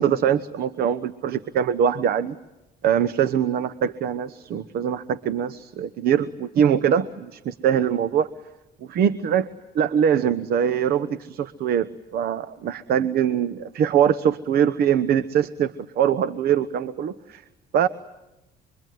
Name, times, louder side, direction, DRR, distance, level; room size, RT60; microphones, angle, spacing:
voice 1, 0.0-2.4 2.8-8.3 8.9-9.5 9.7-11.9 12.1-17.4 17.7-17.9, right 8 dB, 65° right, 14 dB, 1.0 m, -22 dB
27.0 x 23.0 x 9.4 m, 0.96 s
cardioid pair, 110°, 17 cm